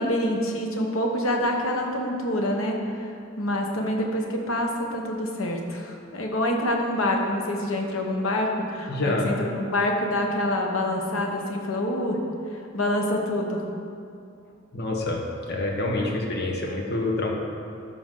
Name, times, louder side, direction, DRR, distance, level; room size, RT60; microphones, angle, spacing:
voice 1, 0.0-3.1 3.4-12.2 12.5-13.6, left 1 dB, 85° left, 1 dB, 1.2 m, -26 dB
voice 2, 8.9-9.3 14.7-15.2 15.5-17.3, left 2 dB, 50° left, 0 dB, 1.3 m, -27 dB
12.5 x 6.0 x 3.9 m, 2.5 s
head